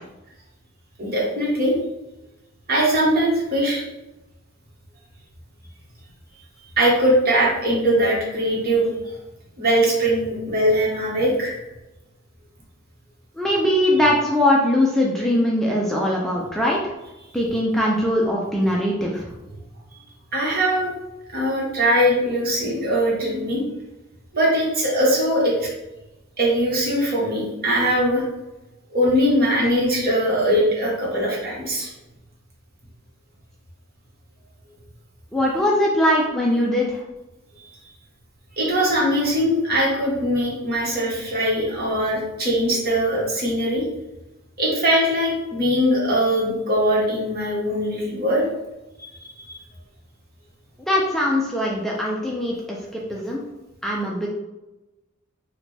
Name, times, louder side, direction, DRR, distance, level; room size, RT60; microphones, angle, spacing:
voice 1, 1.0-1.8 2.7-3.8 6.8-9.1 9.6-11.6 20.3-20.9 21.3-23.6 24.3-25.7 26.4-28.2 28.9-31.9 38.6-43.8 44.6-48.4 49.0-49.1 49.4-49.6, equal, 45° right, -3 dB, 1.2 m, -21 dB
voice 2, 13.4-16.9 17.3-19.3 35.3-37.0 50.9-53.4 53.8-54.3, left 1 dB, ahead, -4 dB, 0.4 m, -21 dB
4.9 x 2.2 x 3.3 m, 1.0 s
head